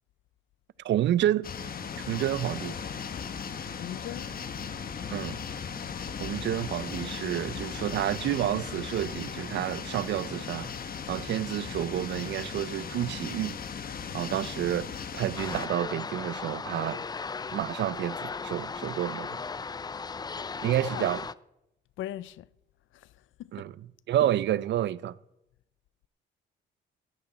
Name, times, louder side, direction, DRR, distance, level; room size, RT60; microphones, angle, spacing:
voice 1, 0.8-1.5 2.1-2.8 5.1-5.4 6.2-10.7 11.1-13.6 14.1-14.9 15.1-17.0 17.5-19.4 20.6-21.3 23.5-25.1, right 12 dB, 65° right, 0.5 m, -29 dB
sound 1, 1.4-15.7, left 6 dB, 45° left, 1.2 m, -37 dB
voice 2, 3.8-4.3 20.8-21.1 22.0-22.4 23.4-23.5, left 13 dB, 75° left, 0.5 m, -38 dB
sound 2, 15.3-21.3, left 4 dB, 20° left, 0.4 m, -36 dB
17.0 x 11.5 x 4.1 m
cardioid pair, 90°, 20 cm